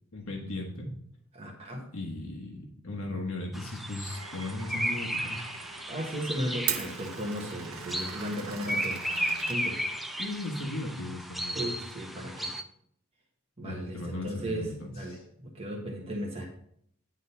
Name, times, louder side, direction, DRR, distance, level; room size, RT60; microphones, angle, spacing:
voice 1, 0.1-0.9 1.9-5.4 10.2-11.7 13.6-15.2, left 2 dB, 75° left, 0 dB, 1.3 m, -37 dB
voice 2, 1.3-1.8 5.9-9.0 9.5-9.9 11.5-12.6 13.6-16.4, equal, 30° right, -1 dB, 1.4 m, -36 dB
sound 1, 3.5-12.6, equal, ahead, 0.5 m, -35 dB
Glass, 4.1-10.3, right 8 dB, 70° right, 0.7 m, -40 dB
9.8 x 3.8 x 5.6 m, 0.68 s
head